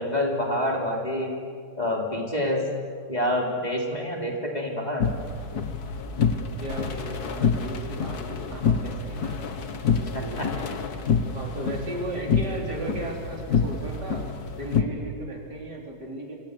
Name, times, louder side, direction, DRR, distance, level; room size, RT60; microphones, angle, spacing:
voice 1, 0.0-1.3 1.8-2.6 3.1-5.0 10.4-10.5, left 1 dB, 25° left, -1 dB, 3.5 m, -27 dB
sound 1, 5.0-14.8, left 5 dB, 65° left, 1.9 m, -27 dB
voice 2, 6.6-9.6 9.9-10.8 11.3-14.2 14.5-16.3, right 1 dB, 70° right, -1 dB, 5.0 m, -36 dB
27.5 x 25.0 x 6.8 m, 2.2 s
omnidirectional pair, 1.8 m